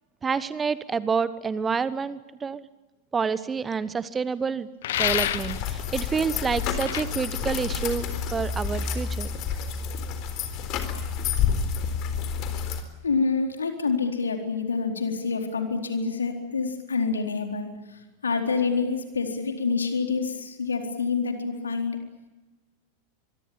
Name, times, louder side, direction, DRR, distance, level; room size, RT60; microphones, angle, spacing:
voice 1, 0.2-2.6 3.1-4.7 5.0-8.1 8.3-9.3, right 5 dB, 15° right, 16 dB, 1.1 m, -28 dB
sound 1, 4.8-5.6 6.8-7.0, left 12 dB, 60° left, 1.2 m, -27 dB
sound 2, 4.9-12.8, left 7 dB, 40° left, 3.9 m, -29 dB
voice 2, 13.0-17.7 18.2-22.0, left 4 dB, 75° left, 4 dB, 4.2 m, -27 dB
24.5 x 24.5 x 8.9 m, 1.1 s
figure-of-eight pair, 90°, 0 cm